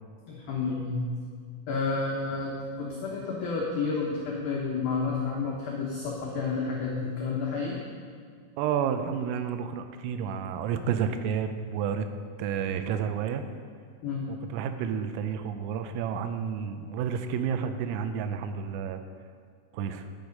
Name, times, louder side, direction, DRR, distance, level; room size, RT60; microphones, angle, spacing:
voice 1, 0.3-1.0 1.7-7.8 14.0-14.3, left 4 dB, 85° left, -3 dB, 2.1 m, -30 dB
voice 2, 8.6-12.1 12.4-13.4 14.3-19.0 19.7-20.1, right 7 dB, 85° right, 8 dB, 3.3 m, -30 dB
10.5 x 8.2 x 5.2 m, 2.1 s
omnidirectional pair, 5.9 m